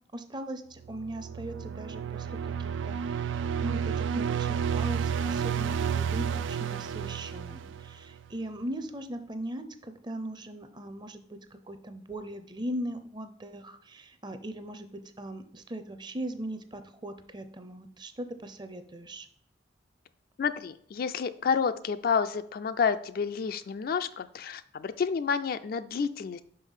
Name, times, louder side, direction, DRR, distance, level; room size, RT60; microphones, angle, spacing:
voice 1, 0.1-11.4 11.7-14.9 15.2-19.3, right 1 dB, 25° right, 10 dB, 0.6 m, -39 dB
sound 1, 0.8-8.2, right 7 dB, 80° right, 0.3 m, -31 dB
voice 2, 20.4-26.4, left 6 dB, 50° left, 11 dB, 0.4 m, -29 dB
5.5 x 5.4 x 5.5 m, 0.62 s
head